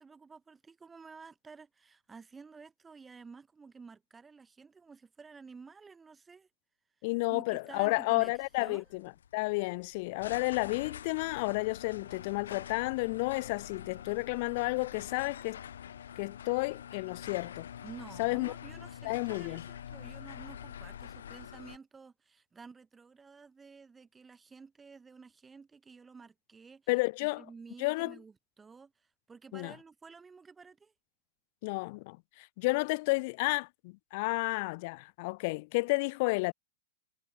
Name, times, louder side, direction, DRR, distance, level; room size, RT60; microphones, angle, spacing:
voice 1, 0.0-6.5 7.0-8.9 17.8-26.9 27.2-30.9, right 5 dB, 10° right, 7.4 m, -52 dB
voice 2, 7.0-9.0 9.3-15.6 16.2-17.7 18.2-18.5 19.0-19.6 26.9-27.4 27.8-28.1 29.5-29.7 31.6-36.5, left 26 dB, 35° left, 2.8 m, -31 dB
sound 1, 8.1-21.8, left 9 dB, 85° left, 4.8 m, -46 dB
supercardioid pair, 175°, 0 cm